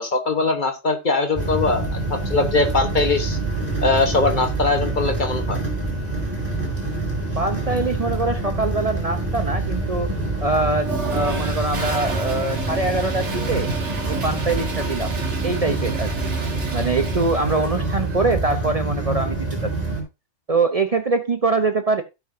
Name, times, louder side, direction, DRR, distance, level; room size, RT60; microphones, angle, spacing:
voice 1, 0.0-3.4 3.8-5.6, left 3 dB, 45° left, 6 dB, 1.4 m, -21 dB
sound 1, 1.3-20.0, right 2 dB, 10° right, 4.1 m, -26 dB
voice 2, 7.4-10.1 10.4-13.7 14.1-15.2 15.4-16.1 16.7-19.7 20.5-22.0, right 3 dB, 35° right, 7 dB, 0.8 m, -23 dB
Toilet flush, 10.8-18.1, right 4 dB, 75° right, 1.8 m, -32 dB
16.5 x 5.9 x 2.7 m, 0.25 s
omnidirectional pair, 1.2 m